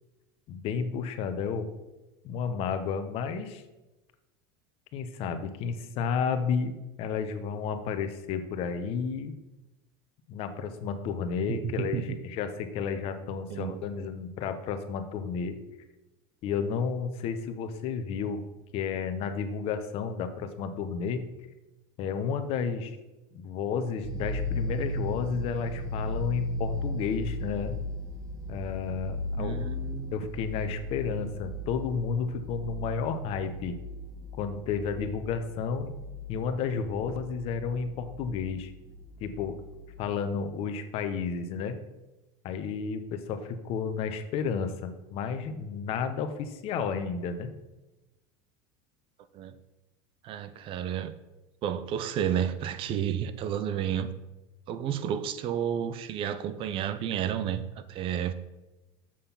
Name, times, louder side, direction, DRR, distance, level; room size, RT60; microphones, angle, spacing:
voice 1, 0.5-1.7 2.2-3.6 4.9-9.3 10.3-15.6 16.4-18.4 18.7-21.3 22.0-23.0 23.3-27.7 28.5-29.6 30.1-33.8 34.4-35.9 36.3-38.7 39.2-39.6 40.0-41.8 42.4-47.5, left 6 dB, 50° left, 9 dB, 1.1 m, -32 dB
voice 2, 11.5-12.2 13.5-13.8 29.4-30.1 49.3-49.5 50.2-51.1 51.6-54.1 54.7-58.3, right 9 dB, 45° right, 13 dB, 0.7 m, -31 dB
sound 1, 24.0-40.1, left 1 dB, 25° right, 1.4 m, -36 dB
7.6 x 6.6 x 5.6 m, 1.0 s
supercardioid pair, 120°, 12 cm